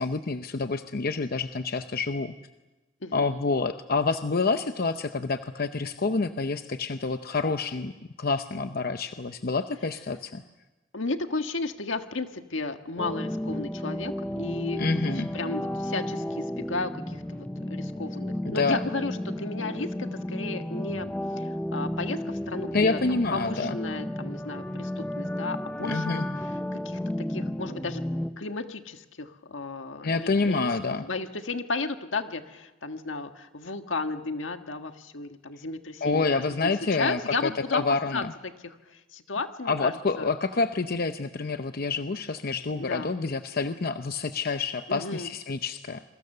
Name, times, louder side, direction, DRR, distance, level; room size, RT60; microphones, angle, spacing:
voice 1, 0.0-2.3 3.1-7.9 8.2-10.4 14.8-15.3 18.4-18.8 22.7-23.8 25.9-26.2 30.0-31.0 36.0-38.3 39.6-46.0, left 4 dB, 50° left, 9 dB, 0.7 m, -28 dB
voice 2, 3.0-3.4 10.9-15.0 15.3-26.5 26.7-27.0 27.3-28.0 28.4-36.7 37.0-37.8 38.1-38.2 38.6-40.3 42.8-43.1 44.9-45.3, left 3 dB, 80° left, 7 dB, 1.7 m, -34 dB
sound 1, 13.0-28.3, left 1 dB, 10° left, 0.9 m, -33 dB
27.0 x 23.0 x 6.8 m, 1.1 s
head